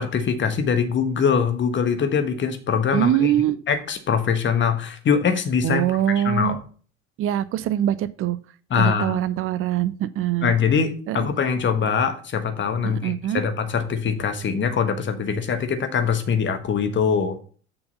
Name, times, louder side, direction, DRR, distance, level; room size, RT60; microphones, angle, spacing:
voice 1, 0.0-3.3 3.7-5.8 6.2-6.6 8.7-9.2 10.4-17.4, left 6 dB, 30° left, 9 dB, 1.3 m, -23 dB
voice 2, 2.9-3.6 5.6-6.6 7.2-8.4 8.8-10.5 11.1-11.2 12.8-13.4, right 12 dB, 35° right, 15 dB, 0.6 m, -23 dB
6.8 x 5.9 x 5.3 m, 0.41 s
figure-of-eight pair, 65°, 38 cm